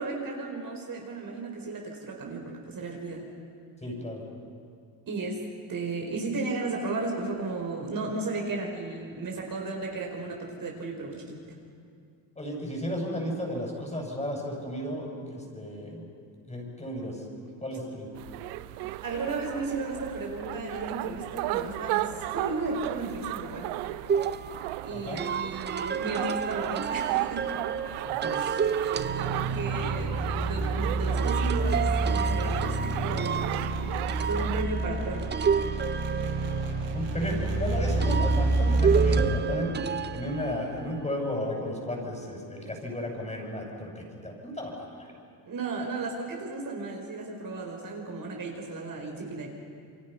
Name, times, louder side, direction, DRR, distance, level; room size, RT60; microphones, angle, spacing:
voice 1, 0.0-3.3 5.1-5.4 5.7-11.4 19.0-23.7 24.8-27.6 28.4-33.4 34.2-35.3 45.4-49.5, right 3 dB, 40° right, 0 dB, 4.3 m, -34 dB
voice 2, 3.8-4.2 12.4-16.1 16.5-17.2 17.6-18.1 24.9-25.2 28.0-28.5 36.9-45.1, left 1 dB, 15° left, 0 dB, 6.7 m, -34 dB
sound 1, 18.2-34.6, right 15 dB, 85° right, 0.9 m, -35 dB
sound 2, 24.1-29.9 31.2-37.3 38.0-41.0, right 7 dB, 20° right, 0.5 m, -31 dB
sound 3, 28.9-39.4, right 2 dB, 65° right, 5.4 m, -28 dB
28.5 x 23.5 x 5.7 m, 2.3 s
supercardioid pair, 95°, 48 cm